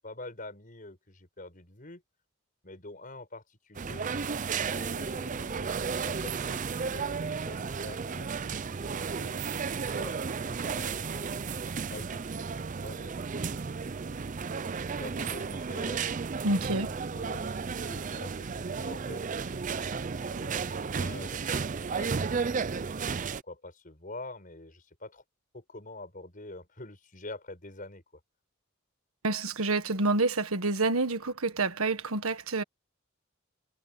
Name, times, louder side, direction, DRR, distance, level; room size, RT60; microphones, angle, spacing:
voice 1, 0.0-2.0 2.6-4.1 4.7-10.1 10.4-12.6 12.8-14.2 14.9-16.0 16.7-22.7 23.4-25.2 25.5-28.0, left 2 dB, 40° left, 5.9 m, -46 dB
sound 1, 3.7-23.4, right 5 dB, 35° right, 0.5 m, -33 dB
voice 2, 16.4-16.9 29.2-32.6, right 3 dB, 90° right, 1.6 m, -28 dB
head